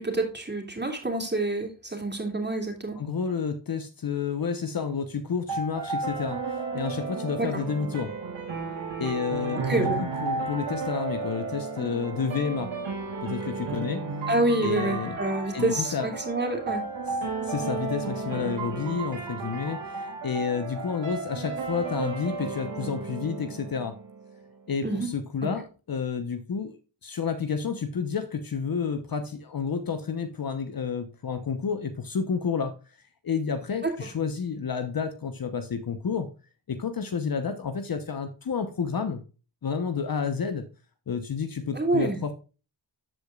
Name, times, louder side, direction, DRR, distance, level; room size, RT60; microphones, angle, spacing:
voice 1, 0.0-3.0 7.4-7.6 9.6-10.0 14.3-16.8 24.8-25.1 33.8-33.9 41.7-42.2, right 2 dB, 25° right, 3 dB, 2.9 m, -27 dB
voice 2, 3.0-8.1 9.0-9.9 10.2-12.7 13.2-14.1 14.6-15.2 15.5-16.2 17.4-24.0 24.7-26.8 27.0-32.8 33.2-36.3 36.7-39.2 39.6-40.7 41.1-42.3, left 6 dB, 50° left, 8 dB, 1.0 m, -30 dB
sound 1, 5.5-24.4, right 4 dB, 85° right, 4.9 m, -33 dB
13.5 x 4.9 x 2.4 m, 0.33 s
cardioid pair, 65°, 45 cm